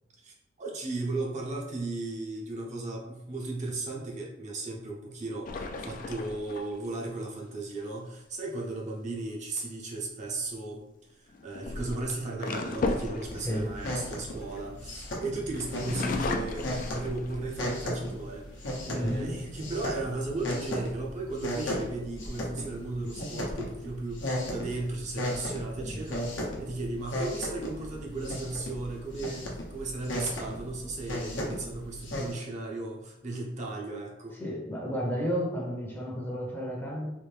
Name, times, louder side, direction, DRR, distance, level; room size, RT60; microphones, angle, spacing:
voice 1, 0.2-34.4, right 2 dB, 40° right, -2 dB, 0.6 m, -36 dB
sound 1, 5.5-7.1 10.0-10.3 11.3-15.0 15.5-17.7 18.2-18.3 18.7-19.2, left 2 dB, 45° left, 0.3 m, -35 dB
sound 2, 13.2-32.3, left 1 dB, 75° left, 0.8 m, -36 dB
voice 2, 18.9-19.4 25.8-26.0 34.4-37.1, equal, 10° left, -2 dB, 0.7 m, -32 dB
3.3 x 2.6 x 3.3 m, 0.93 s
head